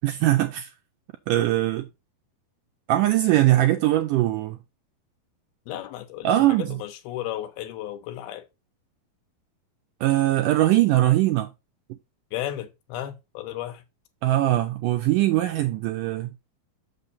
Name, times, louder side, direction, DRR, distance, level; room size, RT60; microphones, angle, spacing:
voice 1, 0.0-0.7 1.3-1.9 2.9-4.6 6.2-6.8 10.0-11.5 14.2-16.3, right 15 dB, 85° right, 1.9 m, -21 dB
voice 2, 5.7-8.5 12.3-13.8, left 13 dB, 90° left, 2.8 m, -34 dB
6.8 x 5.9 x 4.1 m
omnidirectional pair, 4.4 m